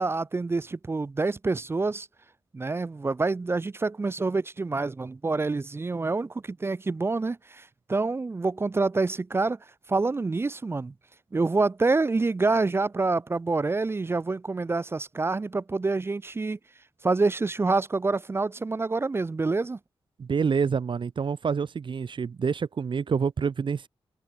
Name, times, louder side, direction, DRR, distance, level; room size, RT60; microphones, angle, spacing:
voice 1, 0.0-2.1 2.5-9.6 9.9-10.9 11.3-16.6 17.0-19.8, right 3 dB, 25° right, 0.4 m, -27 dB
voice 2, 20.2-23.9, right 6 dB, 60° right, 1.2 m, -27 dB
open air
wide cardioid pair, 95°, 9 cm